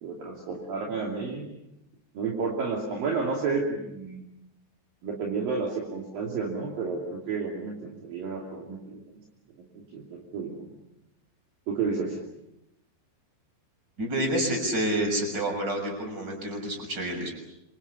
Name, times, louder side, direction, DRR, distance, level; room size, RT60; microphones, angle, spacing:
voice 1, 0.0-1.4 2.1-4.3 5.0-9.0 9.7-10.7 11.7-12.2, right 4 dB, 55° right, -1 dB, 4.4 m, -31 dB
voice 2, 14.0-17.3, right 1 dB, 25° right, 2 dB, 7.0 m, -28 dB
27.5 x 26.5 x 7.0 m, 0.84 s
omnidirectional pair, 5.0 m